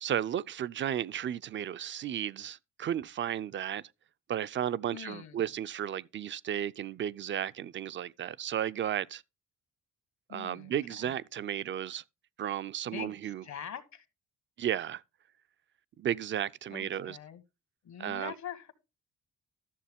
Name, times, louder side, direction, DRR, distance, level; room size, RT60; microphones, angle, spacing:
voice 1, 0.0-3.8 4.3-9.2 10.3-12.0 12.4-13.4 14.6-15.0 16.0-17.2 18.0-18.3, right 10 dB, 40° right, 0.4 m, -34 dB
voice 2, 4.9-5.6 10.3-11.1 12.9-14.1 16.7-17.4 17.8-18.7, left 8 dB, 65° left, 1.4 m, -44 dB
12.5 x 6.8 x 3.5 m
cardioid pair, 90°, 30 cm